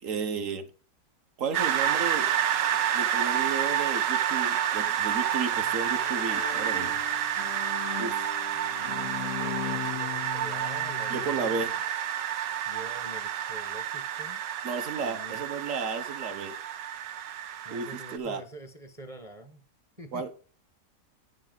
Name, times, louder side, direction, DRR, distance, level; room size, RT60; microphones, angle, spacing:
voice 1, 0.0-0.6 1.4-2.3 2.9-7.0 8.0-8.3 11.1-11.8 12.4-12.5 14.6-16.6 17.7-18.4 20.1-20.3, right 5 dB, 55° right, 1.2 m, -33 dB
sound 1, 1.5-18.2, right 10 dB, 90° right, 1.4 m, -29 dB
Bowed string instrument, 5.5-11.6, left 9 dB, 65° left, 0.7 m, -39 dB
voice 2, 8.5-11.8 12.7-14.4 15.0-15.4 17.6-19.6 20.0-20.3, right 1 dB, 25° right, 1.0 m, -46 dB
10.0 x 7.4 x 3.9 m
omnidirectional pair, 1.8 m